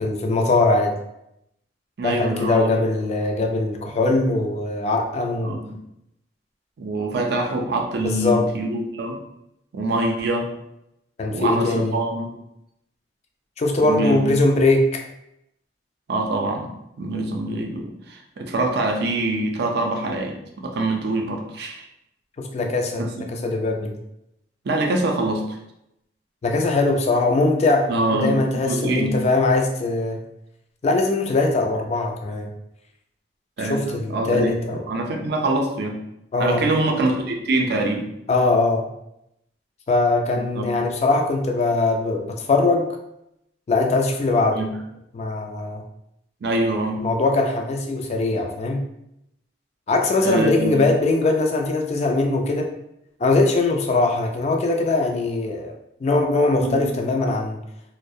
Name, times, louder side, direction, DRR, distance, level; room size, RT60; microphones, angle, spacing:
voice 1, 0.0-1.0 2.0-5.6 8.0-8.5 11.2-12.0 13.6-15.0 22.5-24.0 26.4-30.2 30.8-32.5 33.6-34.8 36.3-36.7 38.3-38.9 39.9-43.0 43.7-44.6 45.1-45.8 47.0-48.8 49.9-52.7 53.2-55.8 56.0-57.6, left 2 dB, 35° left, 3 dB, 0.3 m, -21 dB
voice 2, 2.0-2.7 5.4-5.8 6.8-9.2 9.7-10.5 11.3-12.4 13.8-14.2 16.1-21.9 23.0-23.1 24.6-25.6 27.9-29.1 33.6-34.5 34.9-36.0 36.4-38.1 40.4-40.7 44.5-44.7 46.4-47.0 50.2-50.8 56.6-56.9, right 2 dB, 60° right, 2 dB, 0.4 m, -24 dB
2.3 x 2.0 x 2.6 m, 0.81 s
head